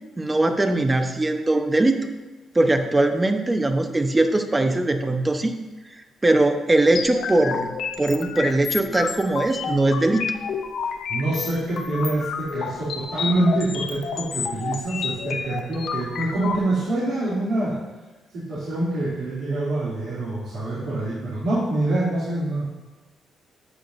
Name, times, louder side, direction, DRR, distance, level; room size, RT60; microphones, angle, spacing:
voice 1, 0.2-2.0 2.5-5.5 6.2-7.7 8.0-10.2, right 2 dB, 20° right, 6 dB, 0.9 m, -20 dB
sound 1, 6.9-16.6, left 6 dB, 70° left, 0.8 m, -30 dB
voice 2, 11.1-17.8 18.3-22.7, right 2 dB, 85° right, -10 dB, 2.8 m, -25 dB
12.0 x 8.6 x 2.6 m, 1.2 s
cardioid pair, 100°, 0 cm